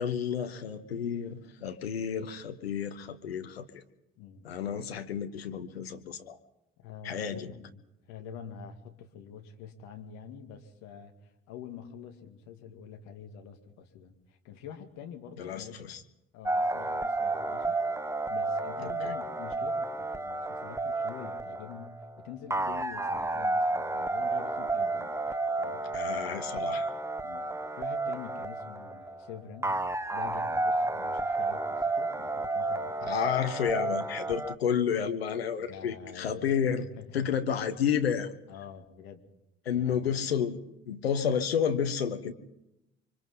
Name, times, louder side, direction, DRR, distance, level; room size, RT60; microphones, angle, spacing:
voice 1, 0.0-3.8 4.4-6.4 7.0-7.5 15.4-16.0 19.0-19.1 25.9-26.9 33.1-36.9 37.1-38.3 39.6-42.3, left 7 dB, 85° left, 7 dB, 1.2 m, -31 dB
voice 2, 6.8-7.8 8.1-15.8 16.3-17.8 18.3-25.8 27.2-27.4 27.7-29.7 30.1-33.5 33.8-33.9 35.6-37.3 37.7-37.8 38.5-39.2 39.7-40.3, left 7 dB, 65° left, 5 dB, 2.3 m, -46 dB
sound 1, 16.5-34.6, right 2 dB, 10° right, 1.1 m, -31 dB
29.0 x 24.5 x 3.9 m, 0.89 s
figure-of-eight pair, 50°, 30 cm